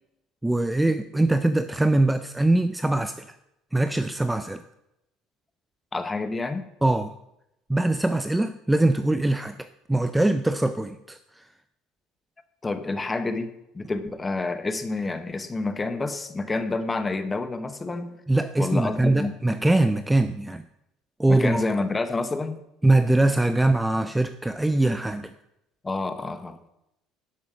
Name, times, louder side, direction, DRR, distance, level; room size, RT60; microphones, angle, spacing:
voice 1, 0.4-3.3 3.7-4.6 6.8-7.1 7.7-11.5 18.3-20.6 21.2-21.6 22.8-25.3, right 2 dB, 5° right, 11 dB, 0.4 m, -22 dB
voice 2, 5.9-6.7 12.6-13.5 13.7-18.2 18.6-19.4 21.3-22.6 25.8-26.6, left 3 dB, 20° left, 10 dB, 1.0 m, -28 dB
11.5 x 5.4 x 6.2 m, 0.84 s
supercardioid pair, 110°, 0 cm